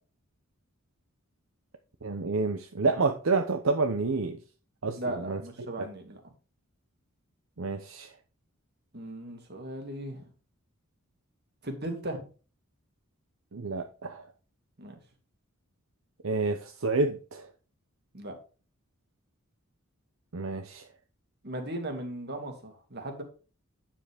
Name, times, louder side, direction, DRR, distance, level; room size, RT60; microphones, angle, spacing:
voice 1, 2.0-4.4 4.8-5.4 5.8-5.9 7.6-8.1 13.5-14.3 16.2-17.5 20.3-20.9, right 3 dB, 70° right, 0.9 m, -29 dB
voice 2, 4.9-6.2 8.9-10.3 11.6-12.3 14.8-15.0 18.1-18.3 21.4-23.2, right 1 dB, 50° right, 2.3 m, -37 dB
9.2 x 7.4 x 3.6 m
head